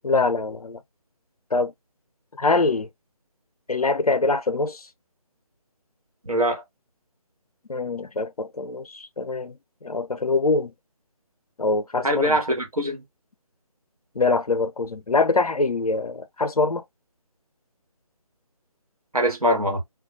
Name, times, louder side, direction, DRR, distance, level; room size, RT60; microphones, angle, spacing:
voice 1, 0.0-0.8 1.5-1.7 2.4-2.9 3.7-4.8 7.7-9.5 9.8-10.7 11.6-12.4 14.2-16.8, left 3 dB, 85° left, 0.5 m, -24 dB
voice 2, 6.3-6.6 12.0-13.0 19.1-19.8, equal, 85° right, 1.1 m, -22 dB
2.2 x 2.1 x 2.6 m
figure-of-eight pair, 150°, 19 cm